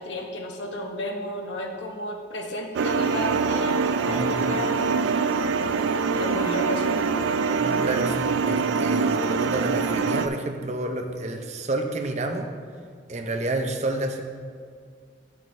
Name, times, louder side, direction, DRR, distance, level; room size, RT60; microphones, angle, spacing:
voice 1, 0.0-5.1 6.2-6.8, left 1 dB, 75° left, 2 dB, 1.0 m, -33 dB
sound 1, 2.7-10.3, right 5 dB, 85° right, 0.3 m, -24 dB
voice 2, 4.0-4.4 7.6-12.5 13.1-14.2, right 2 dB, 35° right, 4 dB, 0.6 m, -29 dB
10.5 x 6.5 x 3.2 m, 2.2 s
head